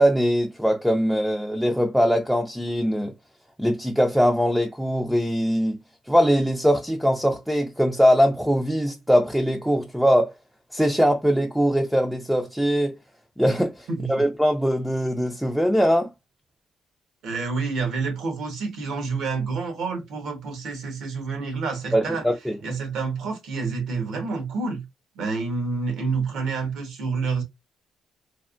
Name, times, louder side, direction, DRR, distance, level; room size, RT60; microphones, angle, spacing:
voice 1, 0.0-3.1 3.6-5.8 6.1-10.3 10.7-13.0 13.4-16.1 21.9-22.6, equal, ahead, 0.4 m, -21 dB
voice 2, 17.2-22.2 22.6-24.8 25.1-27.4, right 4 dB, 80° right, 1.1 m, -28 dB
3.3 x 2.0 x 2.5 m
cardioid pair, 90°, 0 cm